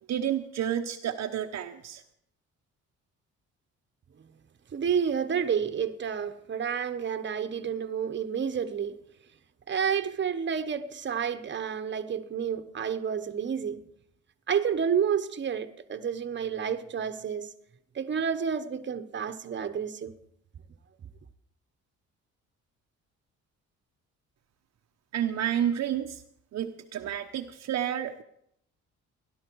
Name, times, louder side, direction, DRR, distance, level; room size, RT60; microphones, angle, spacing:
voice 1, 0.1-2.0 25.1-26.2 26.5-28.2, right 10 dB, 60° right, 0.8 m, -30 dB
voice 2, 4.7-9.0 9.7-13.9 14.5-17.5 17.9-20.1, right 7 dB, 40° right, 1.1 m, -30 dB
16.5 x 11.5 x 4.6 m
cardioid pair, 90°, 30 cm